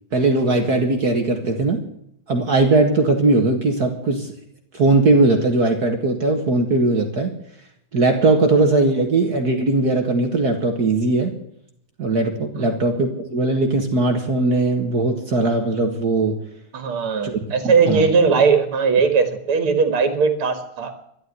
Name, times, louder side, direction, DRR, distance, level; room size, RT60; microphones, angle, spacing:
voice 1, 0.1-1.8 2.3-4.3 4.7-7.3 7.9-11.3 12.0-16.4 17.2-17.3 17.6-18.1, right 2 dB, 50° right, 4 dB, 2.1 m, -19 dB
voice 2, 16.7-20.9, right 5 dB, 85° right, 8 dB, 2.6 m, -19 dB
13.0 x 11.5 x 9.5 m, 0.75 s
omnidirectional pair, 2.3 m